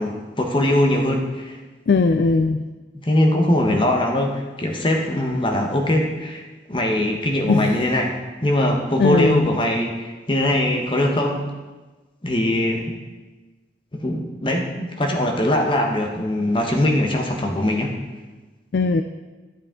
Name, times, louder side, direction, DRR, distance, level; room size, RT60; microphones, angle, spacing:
voice 1, 0.0-1.6 3.0-6.4 6.7-8.1 8.4-11.5 12.2-12.9 13.9-17.9, left 1 dB, 25° left, 1 dB, 1.1 m, -21 dB
voice 2, 1.9-2.6 7.5-7.7 9.0-9.5 18.7-19.0, left 4 dB, 60° left, 9 dB, 0.3 m, -18 dB
12.0 x 8.0 x 3.7 m, 1.3 s
head